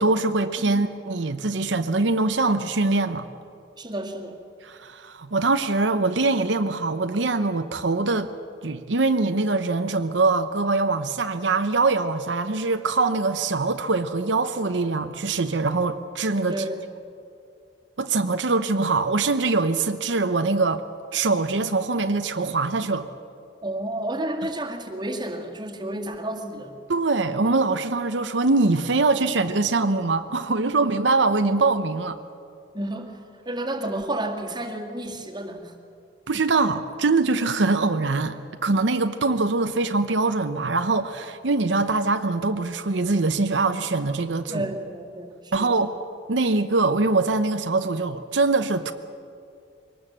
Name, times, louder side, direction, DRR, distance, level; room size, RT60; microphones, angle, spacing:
voice 1, 0.0-3.3 4.6-8.3 8.6-16.6 18.0-20.8 21.1-23.1 26.9-32.2 36.3-44.7 45.5-45.9 46.3-48.9, right 3 dB, 85° right, 8 dB, 0.8 m, -23 dB
voice 2, 3.8-4.4 16.5-16.8 23.6-26.7 32.7-35.7 44.5-45.7, right 1 dB, 25° right, 1 dB, 2.1 m, -31 dB
23.0 x 19.0 x 7.5 m, 2.4 s
head